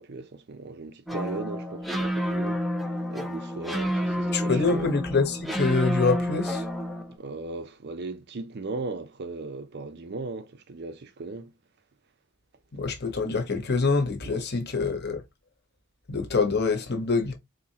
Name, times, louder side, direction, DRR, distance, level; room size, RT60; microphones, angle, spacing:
voice 1, 0.0-2.6 3.1-5.0 7.1-11.5 14.3-14.4, right 3 dB, 50° right, 0.5 m, -37 dB
sound 1, 1.1-7.2, equal, ahead, 0.6 m, -29 dB
voice 2, 4.3-6.7 12.7-15.2 16.1-17.3, left 4 dB, 50° left, 1.1 m, -25 dB
4.1 x 2.8 x 2.8 m
head